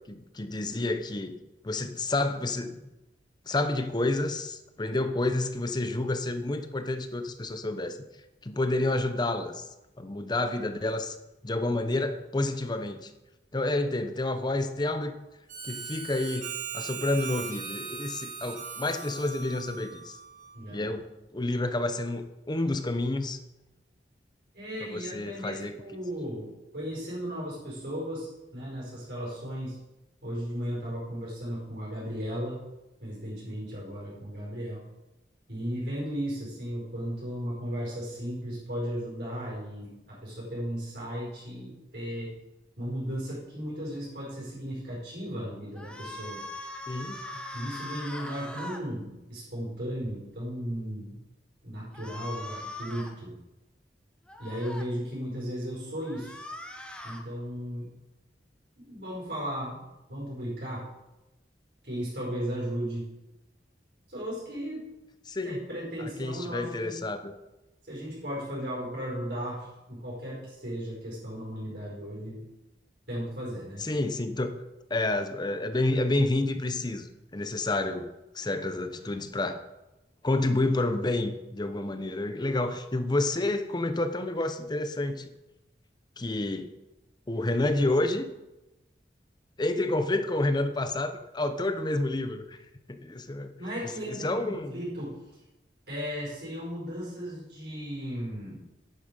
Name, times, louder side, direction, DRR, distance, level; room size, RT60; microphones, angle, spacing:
voice 1, 0.1-1.4 1.6-2.9 3.5-8.0 8.4-9.6 10.0-11.2 11.4-13.1 13.5-15.1 15.6-20.2 20.7-23.4 24.8-25.7 46.9-47.4 65.3-65.6 66.0-67.3 73.8-74.6 74.9-78.0 78.3-79.6 80.2-85.3 86.2-86.7 87.3-88.3 89.6-92.6 92.9-93.6 94.1-94.7, left 2 dB, 25° left, 9 dB, 0.7 m, -29 dB
Harmonica, 15.5-20.7, right 6 dB, 45° right, 1.8 m, -39 dB
voice 2, 20.5-20.9 24.5-29.8 30.2-32.7 33.0-34.8 35.5-42.4 42.8-46.4 47.5-51.2 51.6-53.3 54.4-56.4 57.0-57.9 58.8-59.8 60.1-60.9 61.8-63.1 64.1-64.9 65.4-67.0 67.9-72.5 73.1-73.9 77.8-78.0 78.9-79.2 93.6-95.2 95.9-98.6, equal, 65° right, -6 dB, 5.1 m, -35 dB
sound 1, 45.8-48.8 51.9-53.1 54.3-54.9 56.0-57.2, left 1 dB, 5° left, 1.1 m, -41 dB
10.5 x 9.7 x 5.2 m, 0.99 s
head